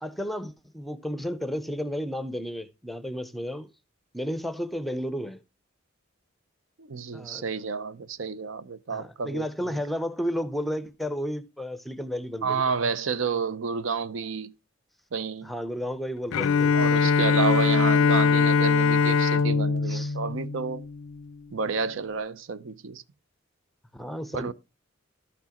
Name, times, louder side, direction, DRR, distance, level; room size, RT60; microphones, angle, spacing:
voice 1, 0.0-3.7 4.1-5.4 7.1-7.5 8.9-12.6 15.4-16.7 19.9-20.2 23.9-24.5, equal, ahead, 0.6 m, -32 dB
voice 2, 6.8-9.8 12.4-14.5 15.1-15.5 16.7-20.9 21.5-23.0 24.3-24.5, right 5 dB, 65° right, 0.6 m, -30 dB
Bowed string instrument, 16.3-21.3, left 5 dB, 80° left, 0.4 m, -22 dB
13.0 x 6.0 x 2.9 m
head